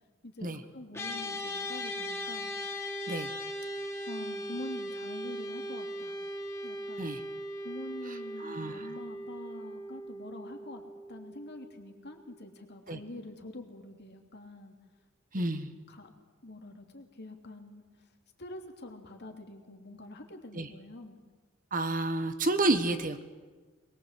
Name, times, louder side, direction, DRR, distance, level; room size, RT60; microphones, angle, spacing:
voice 1, 0.2-2.5 4.1-6.2 6.6-7.1 7.6-10.8 11.1-14.7 15.3-15.5 15.9-16.1 16.4-17.8 18.4-21.2, left 2 dB, 50° left, 3 dB, 3.0 m, -45 dB
sound 1, 0.9-12.4, equal, 10° left, 3.1 m, -39 dB
voice 2, 8.1-8.9 12.9-13.0 15.3-15.7 20.5-20.7 21.7-23.2, right 2 dB, 40° right, 9 dB, 1.4 m, -30 dB
23.0 x 21.5 x 8.3 m, 1.4 s
head